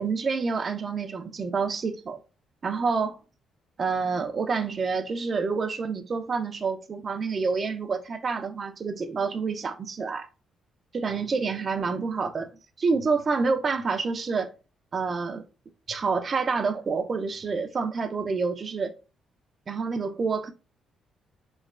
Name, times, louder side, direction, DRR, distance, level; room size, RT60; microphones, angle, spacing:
voice 1, 0.0-2.2 2.6-3.2 3.8-10.3 10.9-12.5 12.8-14.5 14.9-15.4 15.9-18.9 19.7-20.5, right 4 dB, 40° right, 0.3 m, -28 dB
3.1 x 2.1 x 2.3 m
cardioid pair, 90°, 0 cm